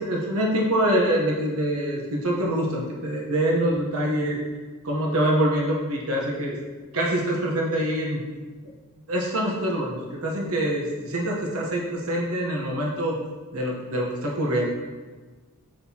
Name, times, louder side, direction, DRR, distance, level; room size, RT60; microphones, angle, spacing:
voice 1, 0.0-4.4 4.8-6.6 6.9-8.2 9.1-13.2 13.5-14.7, right 1 dB, 75° right, -2 dB, 1.1 m, -25 dB
7.7 x 6.0 x 2.9 m, 1.4 s
head